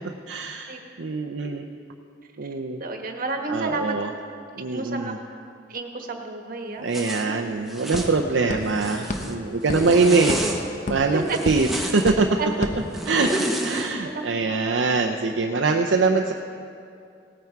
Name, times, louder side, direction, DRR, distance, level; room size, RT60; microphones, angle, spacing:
voice 1, 0.3-1.6 2.4-2.8 3.5-4.1 4.6-5.2 6.8-10.6 10.9-12.4 13.0-16.3, right 3 dB, 70° right, 2 dB, 0.6 m, -23 dB
voice 2, 2.8-4.0 4.7-5.1 5.7-6.9 9.7-9.9 11.1-11.4 12.4-12.5 14.0-14.2, right 3 dB, 50° right, 3 dB, 1.3 m, -31 dB
sound 1, 6.8-6.9 7.1-13.6, left 1 dB, 45° left, 1.0 m, -34 dB
Zipper (clothing), 6.9-7.2 7.7-8.1 8.6-9.3 9.7-10.6 11.3-12.1 12.9-13.9, right 1 dB, ahead, 1.0 m, -30 dB
17.5 x 9.3 x 4.6 m, 2.4 s
head